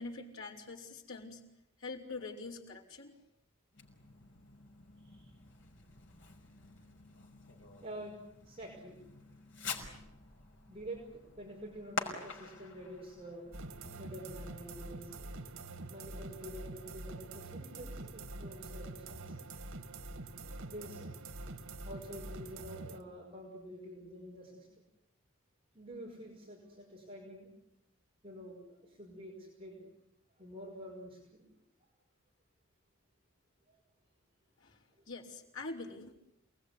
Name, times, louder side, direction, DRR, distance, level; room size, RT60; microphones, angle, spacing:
voice 1, 0.0-1.4 1.8-3.1 34.6-34.8 35.1-36.2, left 3 dB, 80° left, -1 dB, 5.1 m, -44 dB
Fireworks, 3.7-14.4, left 3 dB, 60° left, 5.8 m, -47 dB
voice 2, 7.8-8.2 8.4-9.0 10.7-13.5 14.0-15.1 15.9-19.5 20.6-21.1 21.8-24.7 25.7-27.5 28.2-29.9 30.4-31.5 33.7-33.8, equal, 25° right, -1 dB, 5.6 m, -48 dB
sound 1, 13.5-23.0, right 2 dB, 85° right, 2.1 m, -45 dB
28.5 x 20.5 x 9.9 m, 0.82 s
head